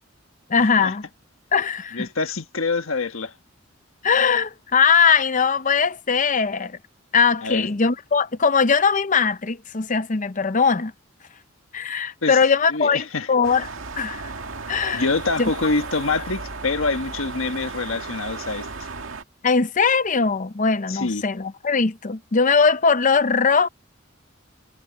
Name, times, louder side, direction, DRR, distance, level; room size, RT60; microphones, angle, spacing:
voice 1, 0.5-1.1 1.5-2.1 4.0-6.8 7.1-10.9 11.7-13.7 13.9-14.2 14.7-15.0 15.4-15.7 19.4-23.7, left 5 dB, 40° left, 0.7 m, -20 dB
voice 2, 1.9-3.3 7.4-7.7 12.2-12.4 12.7-13.3 14.9-18.7 20.9-21.2, left 3 dB, 85° left, 1.5 m, -25 dB
sound 1, 13.4-19.2, right 4 dB, 80° right, 2.1 m, -35 dB
head